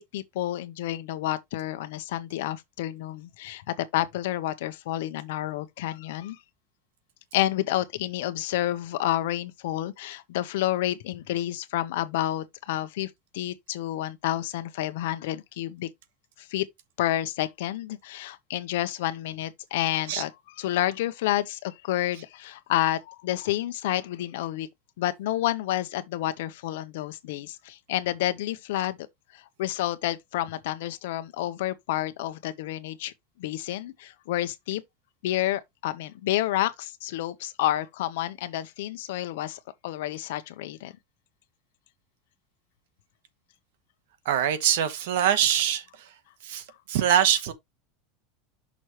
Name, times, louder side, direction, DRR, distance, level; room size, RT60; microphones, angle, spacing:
voice 1, 0.0-6.4 7.3-15.9 16.4-16.7 17.0-24.7 25.0-29.1 29.3-33.1 33.4-34.8 35.2-40.9, left 14 dB, 70° left, 0.9 m, -29 dB
voice 2, 44.2-45.8 46.4-47.5, right 10 dB, 70° right, 1.3 m, -23 dB
6.2 x 3.2 x 5.8 m
supercardioid pair, 170°, 0 cm